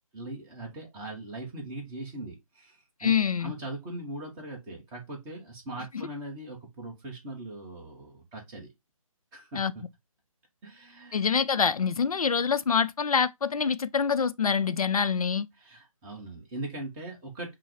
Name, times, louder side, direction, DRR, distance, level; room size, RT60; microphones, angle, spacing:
voice 1, 0.1-8.7 9.3-9.8 10.6-11.2 15.6-17.5, right 2 dB, 10° right, 0.9 m, -40 dB
voice 2, 3.0-3.5 9.6-9.7 11.1-15.5, left 6 dB, 80° left, 0.4 m, -25 dB
5.6 x 2.0 x 3.1 m
figure-of-eight pair, 150°, 18 cm